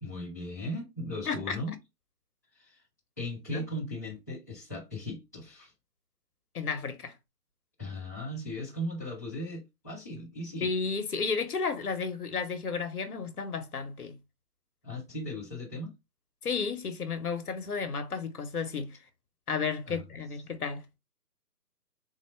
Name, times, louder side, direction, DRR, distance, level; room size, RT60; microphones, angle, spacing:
voice 1, 0.0-1.7 2.6-2.8 3.2-5.7 7.8-10.7 14.8-15.9 19.9-20.0, left 1 dB, 10° left, 0.7 m, -37 dB
voice 2, 1.3-1.6 3.5-3.6 6.5-7.1 10.6-14.2 16.4-19.0 19.5-21.0, left 5 dB, 65° left, 1.0 m, -32 dB
4.1 x 2.1 x 3.2 m
figure-of-eight pair, 155°, 49 cm